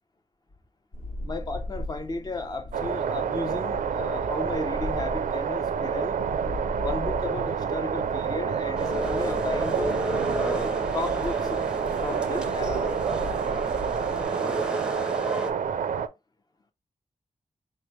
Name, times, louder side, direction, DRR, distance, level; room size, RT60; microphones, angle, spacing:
sound 1, 0.9-14.2, left 2 dB, 80° left, 1.6 m, -39 dB
voice 1, 1.2-6.2 6.8-10.0 10.4-11.7 12.0-12.9, left 3 dB, 30° left, 0.7 m, -34 dB
sound 2, 2.7-16.1, right 7 dB, 90° right, 0.4 m, -28 dB
sound 3, 8.8-15.5, right 1 dB, 5° right, 0.7 m, -33 dB
4.4 x 3.2 x 3.0 m
wide cardioid pair, 120°, 13 cm